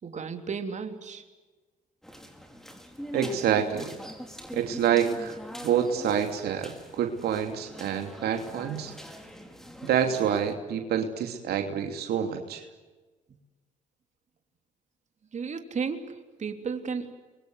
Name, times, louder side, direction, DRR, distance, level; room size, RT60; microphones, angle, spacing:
voice 1, 0.0-1.2 15.3-17.1, right 5 dB, 45° right, 6 dB, 3.4 m, -34 dB
sound 1, 2.0-10.6, equal, ahead, 4.9 m, -42 dB
voice 2, 3.1-3.9 4.5-5.4 5.6-8.9 9.9-12.6, right 8 dB, 70° right, 5 dB, 2.9 m, -27 dB
29.5 x 23.5 x 7.9 m, 1.3 s
supercardioid pair, 65°, 17 cm